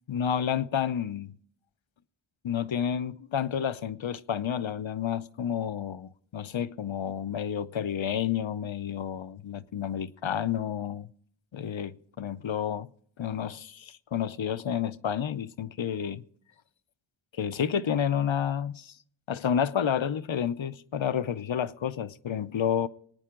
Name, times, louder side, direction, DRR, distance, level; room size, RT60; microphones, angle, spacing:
voice 1, 0.1-1.4 2.4-11.1 11.5-12.9 13.2-16.2 17.4-18.9 19.3-22.9, left 8 dB, 70° left, 0.7 m, -30 dB
24.5 x 9.4 x 3.7 m
wide cardioid pair, 50°, 49 cm